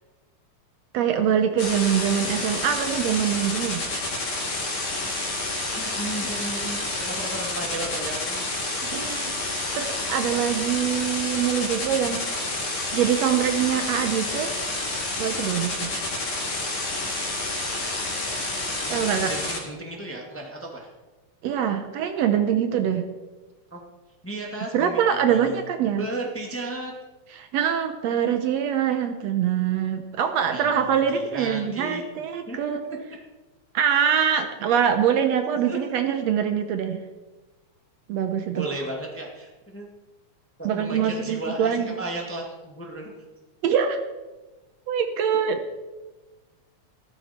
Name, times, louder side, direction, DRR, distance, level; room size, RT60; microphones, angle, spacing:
voice 1, 0.9-3.8 8.9-9.3 9.8-12.5 12.9-14.5 15.2-15.9 18.9-19.3 21.4-23.1 24.7-26.1 27.3-32.8 33.7-37.0 38.1-38.7 40.7-41.9 43.6-44.0 44.9-45.6, right 8 dB, 70° right, 8 dB, 1.9 m, -24 dB
sound 1, 1.6-19.6, left 2 dB, 50° left, 3.2 m, -29 dB
voice 2, 5.7-8.5 18.9-20.9 23.7-23.8 24.2-25.6 25.9-26.9 30.4-32.0 32.5-32.8 35.6-36.0 38.5-39.9 40.6-43.1, right 1 dB, 5° left, 0 dB, 1.4 m, -35 dB
14.5 x 13.5 x 4.4 m, 1.2 s
omnidirectional pair, 3.3 m